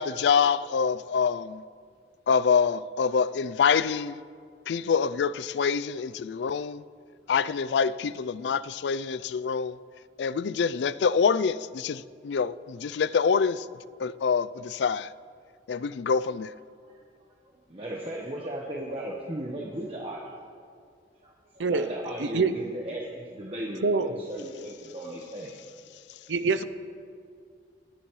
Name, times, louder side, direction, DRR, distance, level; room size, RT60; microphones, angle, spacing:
voice 1, 0.0-1.6 2.3-4.2 4.7-6.8 7.3-9.8 10.2-13.7 14.0-15.1 15.7-16.5, left 6 dB, 70° left, 0.4 m, -26 dB
voice 2, 17.7-20.4 21.2-25.5, right 1 dB, 30° right, 1.2 m, -36 dB
voice 3, 22.2-22.5 23.8-24.2 26.3-26.6, right 4 dB, 85° right, 0.6 m, -25 dB
25.5 x 10.0 x 3.1 m
head